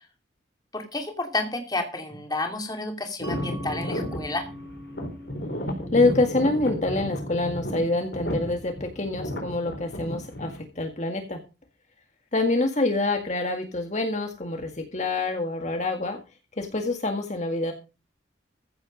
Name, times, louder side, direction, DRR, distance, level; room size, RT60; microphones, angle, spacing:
voice 1, 0.7-4.5, left 2 dB, 20° left, 4 dB, 2.7 m, -31 dB
sound 1, 3.2-10.6, equal, 65° left, 4.4 m, -33 dB
Mallet percussion, 3.2-8.6, left 1 dB, 20° right, 3.4 m, -44 dB
voice 2, 5.9-11.4 12.3-16.2 16.6-17.7, left 2 dB, 40° left, 5 dB, 1.9 m, -26 dB
15.0 x 8.0 x 5.3 m, 0.31 s
head